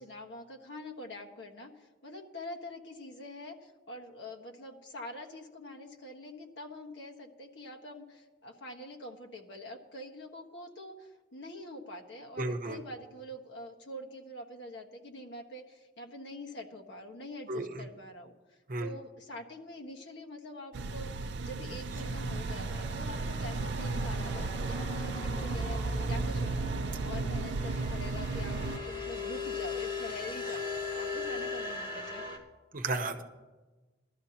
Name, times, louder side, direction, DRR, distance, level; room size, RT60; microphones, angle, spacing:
voice 1, 0.0-18.3 18.8-21.1 21.4-26.4 27.0-32.3, left 1 dB, 75° left, 1 dB, 1.4 m, -45 dB
voice 2, 12.4-12.8 17.5-17.7 18.7-18.9 32.7-33.2, right 2 dB, 45° right, 5 dB, 0.9 m, -33 dB
sound 1, 20.7-28.8, right 3 dB, 70° right, 0.4 m, -34 dB
sound 2, 21.9-32.4, left 2 dB, 50° left, 2.1 m, -38 dB
19.0 x 12.5 x 2.9 m, 1.2 s
head